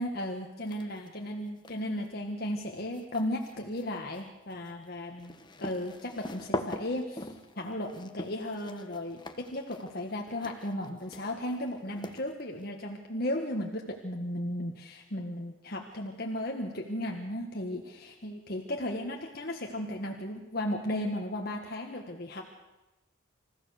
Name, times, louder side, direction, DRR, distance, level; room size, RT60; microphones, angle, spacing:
voice 1, 0.0-22.4, left 1 dB, 50° left, 1 dB, 1.6 m, -35 dB
sound 1, 0.7-1.1 1.5-12.7, left 1 dB, 20° left, 1.2 m, -42 dB
27.5 x 15.5 x 6.5 m, 1.0 s
head